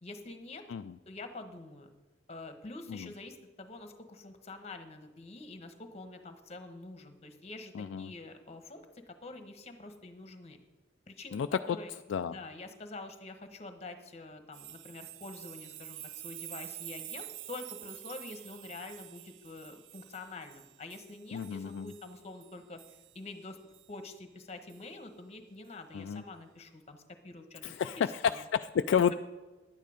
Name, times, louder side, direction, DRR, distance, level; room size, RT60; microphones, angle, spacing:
voice 1, 0.0-0.7 1.1-1.9 2.3-10.6 11.1-11.4 11.7-11.9 12.3-23.6 23.9-27.7 28.2-28.4, left 2 dB, 35° left, 7 dB, 1.1 m, -46 dB
voice 2, 7.7-8.1 11.3-11.8 12.1-12.4 21.3-21.9 25.9-26.2 27.6-29.1, left 7 dB, 70° left, 9 dB, 0.3 m, -31 dB
sound 1, 14.5-23.2 23.7-23.9 24.7-24.8, right 14 dB, 75° right, 0.4 m, -48 dB
11.0 x 9.2 x 5.0 m, 1.2 s
head